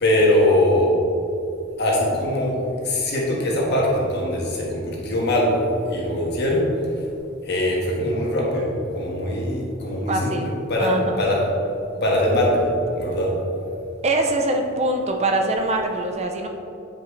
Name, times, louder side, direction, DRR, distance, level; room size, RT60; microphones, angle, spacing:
voice 1, 0.0-0.9 1.8-5.6 5.8-6.6 7.5-11.5 12.0-12.7 12.9-13.3, left 1 dB, 55° left, -3 dB, 1.6 m, -22 dB
voice 2, 10.1-11.2 14.0-16.5, right 2 dB, 30° right, 3 dB, 0.5 m, -23 dB
9.2 x 5.3 x 3.2 m, 2.7 s
head